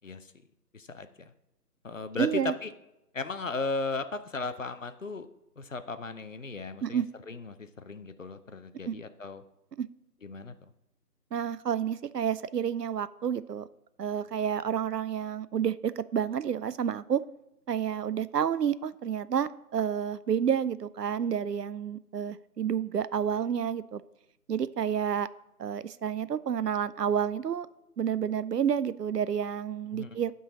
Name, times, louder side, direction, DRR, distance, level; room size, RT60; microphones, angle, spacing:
voice 1, 0.7-1.3 1.8-2.7 3.1-5.3 5.6-9.4 10.2-10.7 29.9-30.2, left 3 dB, 55° left, 11 dB, 0.6 m, -36 dB
voice 2, 2.2-2.5 6.8-7.1 8.9-9.0 9.8-9.9 11.3-13.7 14.0-17.2 17.7-24.0 24.5-25.3 25.6-27.7 28.0-30.3, right 8 dB, 80° right, 15 dB, 0.5 m, -29 dB
11.5 x 3.9 x 5.0 m, 0.91 s
figure-of-eight pair, 155°, 48 cm